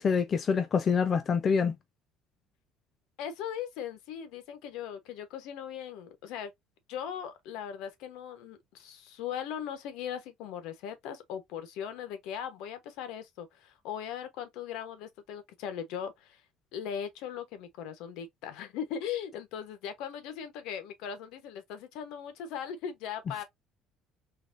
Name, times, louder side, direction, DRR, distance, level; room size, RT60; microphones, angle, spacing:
voice 1, 0.0-1.7, left 6 dB, 30° left, 0.5 m, -26 dB
voice 2, 3.2-6.5 6.9-16.4 16.7-23.4, left 8 dB, 70° left, 1.0 m, -39 dB
4.0 x 3.0 x 2.5 m
cardioid pair, 155°, 0 cm